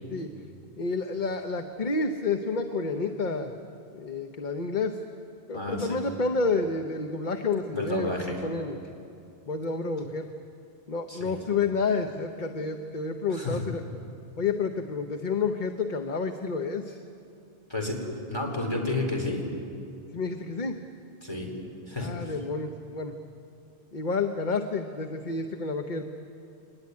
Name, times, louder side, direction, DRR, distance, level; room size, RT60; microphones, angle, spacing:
voice 1, 0.8-3.5 3.9-5.0 5.5-8.8 9.5-10.3 10.9-13.8 14.4-17.0 20.1-20.8 22.0-23.1 23.9-26.1, left 4 dB, 45° left, 6 dB, 1.1 m, -29 dB
voice 2, 5.5-6.0 7.7-8.4 11.1-11.3 13.3-13.7 17.7-18.0 18.3-19.4 21.2-21.5 21.9-22.3, left 2 dB, 25° left, -1 dB, 4.3 m, -31 dB
23.5 x 20.0 x 9.6 m, 2.7 s
omnidirectional pair, 1.1 m